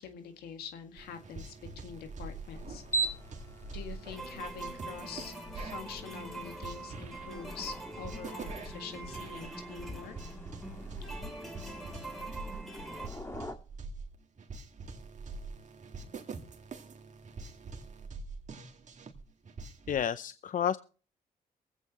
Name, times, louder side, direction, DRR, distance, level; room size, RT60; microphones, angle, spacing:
voice 1, 0.0-1.5 1.8-2.8 3.7-10.1, left 7 dB, 80° left, 6 dB, 1.9 m, -45 dB
sound 1, 1.0-20.0, right 4 dB, 50° right, 2.0 m, -45 dB
sound 2, 2.0-13.6, right 2 dB, 15° left, 1.8 m, -42 dB
sound 3, 4.1-13.1, right 2 dB, ahead, 3.2 m, -44 dB
voice 2, 19.9-20.8, left 9 dB, 55° left, 14 dB, 0.6 m, -30 dB
23.0 x 8.3 x 3.0 m, 0.38 s
supercardioid pair, 55°, 16 cm